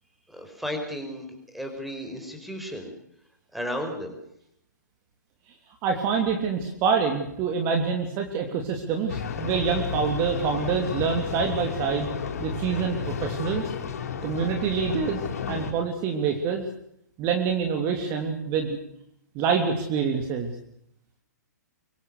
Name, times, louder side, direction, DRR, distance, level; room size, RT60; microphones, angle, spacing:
voice 1, 0.3-2.9 3.5-4.1, equal, ahead, 4 dB, 4.9 m, -34 dB
voice 2, 5.8-12.1 12.4-13.7 14.2-15.2 15.5-16.6 17.2-18.8 19.3-20.5, right 6 dB, 30° right, 4 dB, 3.2 m, -26 dB
sound 1, 9.1-15.7, left 6 dB, 55° left, 5.8 m, -32 dB
24.5 x 24.0 x 6.6 m, 0.73 s
figure-of-eight pair, 120°, 10 cm